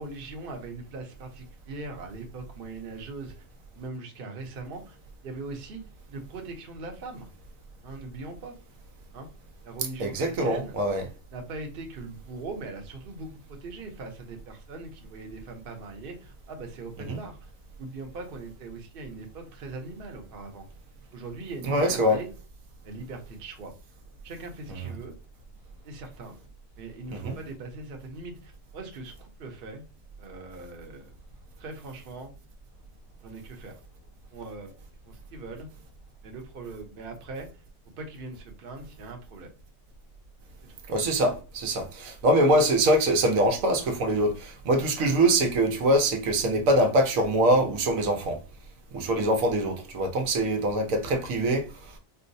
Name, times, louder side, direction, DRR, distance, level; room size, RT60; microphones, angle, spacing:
voice 1, 0.0-3.3 3.7-5.0 5.2-5.8 6.1-7.3 7.8-8.5 9.1-9.3 9.6-10.1 10.4-10.7 11.3-17.4 17.8-20.6 21.1-22.3 22.8-23.7 24.2-25.1 25.8-26.4 26.8-29.8 30.2-31.1 31.6-32.3 33.2-33.8 34.3-34.7 35.0-35.7 36.2-37.5 38.0-39.5 40.6-40.7, right 3 dB, 50° right, 0.8 m, -40 dB
voice 2, 10.0-11.1 17.1-17.2 21.6-22.2 24.7-24.9 27.1-27.4 40.9-48.4 48.9-51.9, right 1 dB, 85° right, 1.1 m, -24 dB
4.5 x 2.1 x 2.6 m
omnidirectional pair, 1.4 m